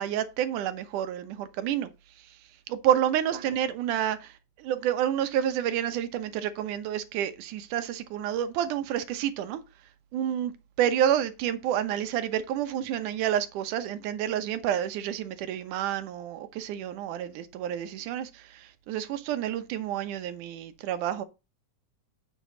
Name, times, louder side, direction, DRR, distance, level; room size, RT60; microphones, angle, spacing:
voice 1, 0.0-1.9 2.7-9.6 10.1-10.5 10.8-21.2, right 10 dB, 85° right, 2.5 m, -29 dB
9.3 x 7.3 x 3.9 m
omnidirectional pair, 3.5 m